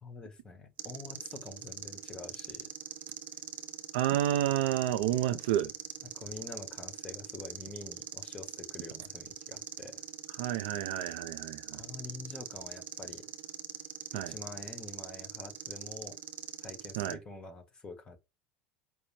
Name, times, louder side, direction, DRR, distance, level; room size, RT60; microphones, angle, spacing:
voice 1, 0.0-2.7 6.0-10.0 11.7-13.3 14.1-16.2 16.6-18.2, left 3 dB, 20° left, 1.6 m, -46 dB
sound 1, 0.8-17.1, right 9 dB, 40° right, 0.7 m, -43 dB
voice 2, 3.9-5.7 10.4-11.8 14.1-14.3 17.0-17.2, right 12 dB, 70° right, 0.5 m, -30 dB
5.3 x 2.2 x 4.3 m
hypercardioid pair, 85°, 4 cm